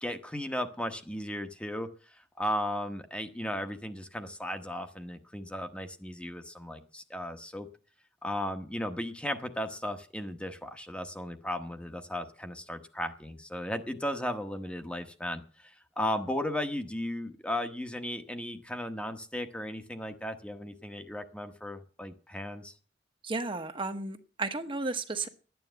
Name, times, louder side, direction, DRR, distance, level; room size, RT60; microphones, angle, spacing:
voice 1, 0.0-7.7 8.2-22.7, left 1 dB, 5° left, 7 dB, 1.0 m, -36 dB
voice 2, 23.2-25.3, right 3 dB, 30° right, 7 dB, 1.0 m, -33 dB
12.0 x 9.5 x 7.9 m, 0.40 s
head